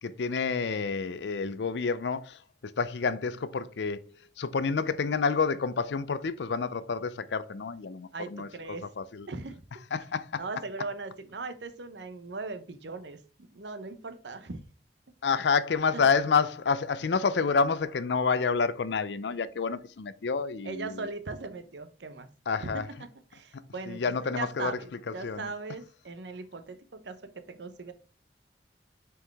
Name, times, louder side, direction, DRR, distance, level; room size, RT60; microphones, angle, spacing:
voice 1, 0.0-4.0 4.4-9.3 9.9-10.4 15.2-21.0 22.5-22.8 23.9-24.8 25.2-25.5, left 5 dB, 75° left, 0.5 m, -29 dB
voice 2, 8.1-8.9 9.3-9.6 10.3-13.2 13.5-14.6 15.9-16.0 20.6-22.3 22.6-27.9, right 3 dB, 75° right, 0.8 m, -39 dB
6.2 x 4.7 x 3.5 m
head